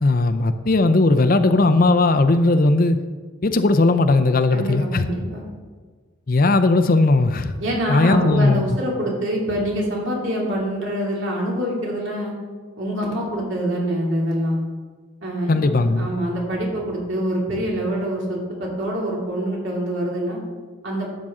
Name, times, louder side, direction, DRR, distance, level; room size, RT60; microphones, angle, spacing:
voice 1, 0.0-3.0 3.4-5.1 6.3-7.5 7.9-8.6 15.5-16.1, left 2 dB, 45° left, 10 dB, 0.5 m, -17 dB
voice 2, 4.5-5.5 7.6-12.3 12.8-14.6 15.2-20.4 20.8-21.1, equal, 65° right, -3 dB, 2.8 m, -25 dB
12.0 x 7.5 x 3.7 m, 1.4 s
head